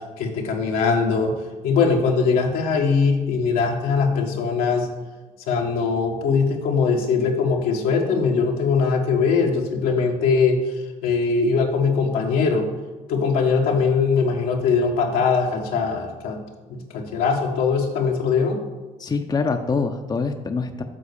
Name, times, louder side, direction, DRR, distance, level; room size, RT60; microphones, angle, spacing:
voice 1, 0.2-1.4 1.6-4.9 5.5-10.6 11.0-12.7 13.1-16.4 16.7-18.6, left 5 dB, 80° left, 1 dB, 1.4 m, -21 dB
voice 2, 19.0-20.8, left 4 dB, 25° left, 6 dB, 0.7 m, -24 dB
7.5 x 4.1 x 6.8 m, 1.2 s
supercardioid pair, 65°, 15 cm